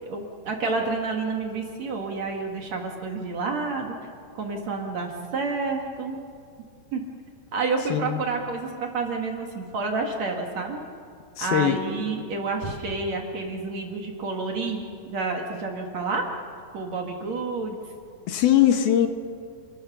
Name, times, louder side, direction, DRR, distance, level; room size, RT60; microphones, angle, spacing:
voice 1, 0.0-4.0 4.3-6.2 6.9-7.0 7.5-10.8 11.4-16.3 16.7-17.8, right 3 dB, 50° right, 2 dB, 2.8 m, -29 dB
voice 2, 7.9-8.2 11.4-11.8 18.3-19.1, left 11 dB, 70° left, 6 dB, 3.1 m, -20 dB
29.5 x 21.0 x 6.2 m, 2.2 s
omnidirectional pair, 4.6 m